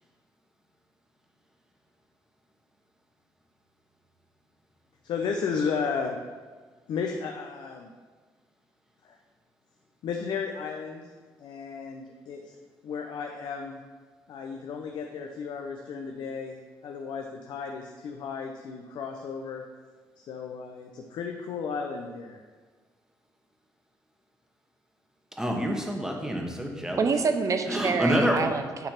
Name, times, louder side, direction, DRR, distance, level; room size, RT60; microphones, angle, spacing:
voice 1, 5.0-6.2 6.9-7.9 9.0-9.2 10.0-11.1 11.4-12.4 12.8-13.8 14.3-16.6 16.8-19.6 20.2-22.4, left 5 dB, 75° left, 3 dB, 0.7 m, -34 dB
voice 2, 25.4-27.0 27.7-28.4, equal, 5° right, 1 dB, 1.3 m, -27 dB
voice 3, 27.0-28.9, right 4 dB, 45° right, 7 dB, 0.7 m, -26 dB
9.2 x 3.3 x 5.8 m, 1.4 s
cardioid pair, 90°, 8 cm